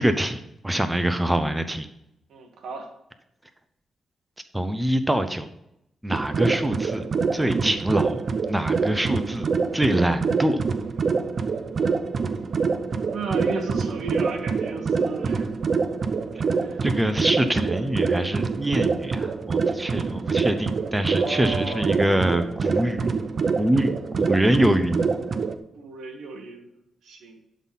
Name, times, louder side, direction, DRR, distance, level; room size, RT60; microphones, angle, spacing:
voice 1, 0.0-1.9 4.5-5.5 6.0-7.1 7.3-10.6 16.8-23.1 23.6-25.1, right 1 dB, 10° right, 9 dB, 0.7 m, -24 dB
voice 2, 2.3-2.9 11.8-11.9 13.1-15.5 16.5-16.9 21.0-22.1 23.9-24.5 25.7-26.7 27.0-27.4, right 4 dB, 80° right, 4 dB, 1.5 m, -34 dB
sound 1, 6.1-25.6, right 5 dB, 55° right, 0.7 m, -26 dB
11.0 x 4.1 x 5.6 m, 0.82 s
cardioid pair, 80°, 0 cm